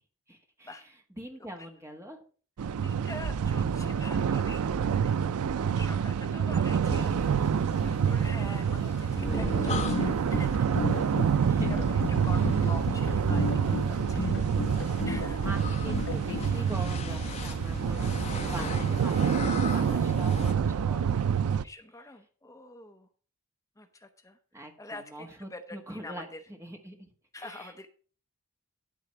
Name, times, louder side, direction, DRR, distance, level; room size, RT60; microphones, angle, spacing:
voice 1, 0.3-0.7 1.2-2.2 11.4-11.7 15.4-21.7 24.5-26.3 26.6-27.1 27.4-27.7, right 1 dB, 10° right, 2 dB, 1.6 m, -43 dB
sound 1, 2.6-21.6, right 7 dB, 90° right, 0.4 m, -27 dB
voice 2, 2.8-5.1 5.8-7.2 7.8-10.5 11.7-14.3 15.1-15.5 18.6-19.1 21.6-23.1 23.8-24.4 24.8-26.4 27.3-27.9, left 2 dB, 15° left, 6 dB, 0.7 m, -45 dB
sound 2, 6.9-20.5, left 2 dB, 30° left, 1.0 m, -38 dB
sound 3, 9.6-16.5, left 5 dB, 55° left, 0.4 m, -34 dB
12.0 x 4.0 x 7.0 m, 0.41 s
head